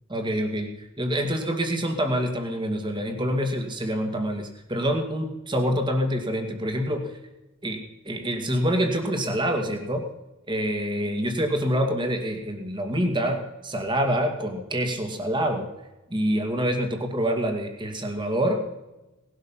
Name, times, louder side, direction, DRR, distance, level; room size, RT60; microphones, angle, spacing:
voice 1, 0.1-7.0 7.6-7.8 8.1-10.0 10.5-15.7 16.1-18.6, equal, 20° right, 4 dB, 2.2 m, -26 dB
19.0 x 12.0 x 5.7 m, 1.0 s
head